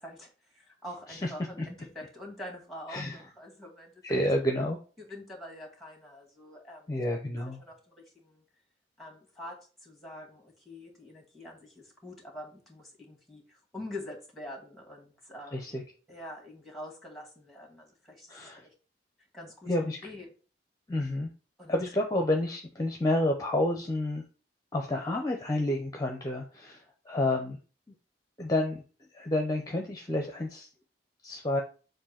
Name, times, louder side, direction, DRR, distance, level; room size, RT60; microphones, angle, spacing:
voice 1, 0.0-3.9 5.0-6.9 7.6-8.4 9.0-15.7 16.1-18.7 19.3-20.3 21.6-21.7, left 1 dB, ahead, 0 dB, 2.0 m, -45 dB
voice 2, 2.9-3.2 4.0-4.8 6.9-7.6 15.5-15.8 18.3-18.7 19.7-20.0 20.9-21.3 21.7-24.2 24.7-27.6 28.4-28.8 29.1-30.7 31.2-31.6, left 1 dB, 20° left, 2 dB, 0.7 m, -29 dB
7.2 x 2.6 x 5.8 m, 0.37 s
head